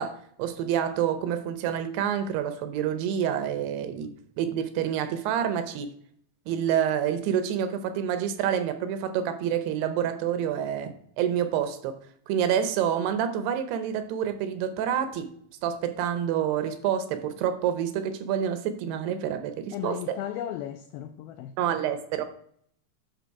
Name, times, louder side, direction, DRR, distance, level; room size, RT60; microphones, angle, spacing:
voice 1, 0.0-4.1 4.4-5.9 6.5-12.0 12.3-15.3 15.6-20.2 21.6-22.2, right 9 dB, 80° right, 2.7 m, -28 dB
voice 2, 19.7-21.8, left 11 dB, 90° left, 2.1 m, -36 dB
9.3 x 6.3 x 4.7 m
omnidirectional pair, 4.9 m